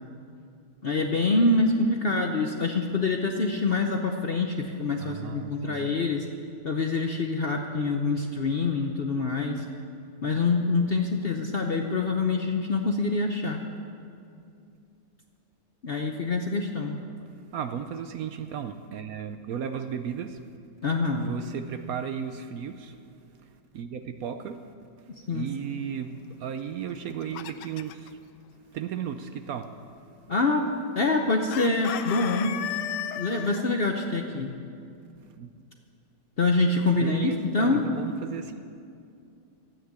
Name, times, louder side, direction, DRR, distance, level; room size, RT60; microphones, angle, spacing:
voice 1, 0.8-6.2 6.6-9.6 10.2-13.6 15.8-17.0 20.8-21.3 25.3-25.5 30.3-30.6 31.0-32.5 33.2-34.5 36.4-37.8, left 3 dB, 50° left, 2 dB, 0.7 m, -25 dB
voice 2, 5.0-5.9 17.5-20.4 21.2-23.0 23.4-24.6 25.3-28.2 28.7-29.7 35.3-35.5 37.0-38.7, right 8 dB, 65° right, 8 dB, 1.0 m, -35 dB
Chicken rooster, 26.9-28.1 31.5-33.6, left 10 dB, 85° left, 1.2 m, -34 dB
13.0 x 9.0 x 8.1 m, 2.5 s
omnidirectional pair, 1.8 m